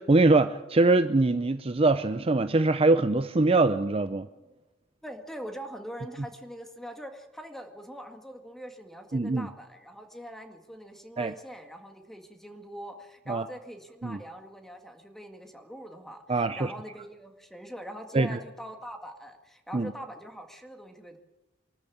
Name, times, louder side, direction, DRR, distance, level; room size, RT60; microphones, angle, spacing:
voice 1, 0.0-4.3 9.1-9.5 11.2-11.3 13.3-13.4 14.0-14.2 16.3-16.7 18.1-18.4 19.7-19.9, right 2 dB, 30° right, 10 dB, 0.6 m, -23 dB
voice 2, 5.0-21.2, equal, ahead, 5 dB, 1.9 m, -43 dB
24.0 x 13.5 x 8.5 m, 1.1 s
head